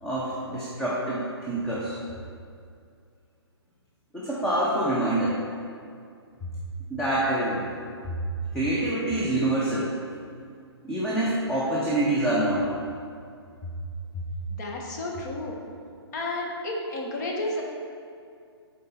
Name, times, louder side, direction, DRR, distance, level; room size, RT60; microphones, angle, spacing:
voice 1, 0.0-2.0 4.1-5.3 6.9-7.6 8.5-9.8 10.8-12.6, right 1 dB, 5° left, -8 dB, 0.7 m, -26 dB
voice 2, 14.5-15.5 16.1-17.6, left 2 dB, 40° left, -1 dB, 1.1 m, -31 dB
6.4 x 3.9 x 4.2 m, 2.3 s
figure-of-eight pair, 135°, 14 cm